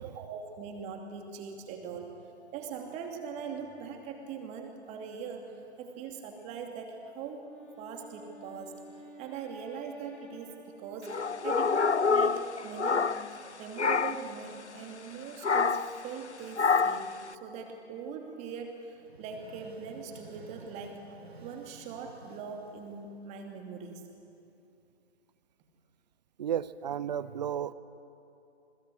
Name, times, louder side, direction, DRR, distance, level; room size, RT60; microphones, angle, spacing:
voice 1, 0.0-2.1 2.5-7.5 7.8-8.7 9.2-21.1 21.4-24.0, right 6 dB, 20° right, 3 dB, 2.7 m, -41 dB
Wind instrument woodwind instrument, 7.3-12.1, equal, 5° left, 2.8 m, -53 dB
sound 1, 11.1-13.5 13.8-14.3 15.4-16.0 16.6-17.1, left 5 dB, 80° left, 0.8 m, -27 dB
sound 2, 18.9-23.5, right 3 dB, 65° right, 3.2 m, -52 dB
voice 2, 26.4-27.7, right 9 dB, 40° right, 17 dB, 0.8 m, -33 dB
28.0 x 22.0 x 7.9 m, 2.8 s
figure-of-eight pair, 130°, 34 cm